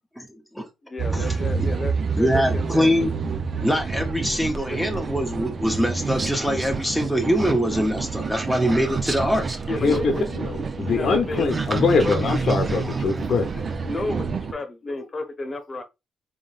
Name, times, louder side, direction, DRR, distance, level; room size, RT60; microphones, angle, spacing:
voice 1, 0.2-0.7 1.1-1.7 2.1-3.1 3.6-9.5, equal, ahead, 0.8 m, -23 dB
voice 2, 0.9-2.9 4.3-4.8 9.7-10.2 10.9-11.7 12.0-12.1 12.5-12.7 13.5-15.8, left 2 dB, 30° left, 1.1 m, -32 dB
sound 1, 1.0-14.5, right 5 dB, 45° right, 0.6 m, -29 dB
sound 2, 4.4-14.0, right 3 dB, 25° right, 0.9 m, -32 dB
voice 3, 9.8-13.5 14.9-15.0, left 4 dB, 55° left, 0.8 m, -23 dB
3.8 x 3.8 x 2.5 m
cardioid pair, 90°, 0 cm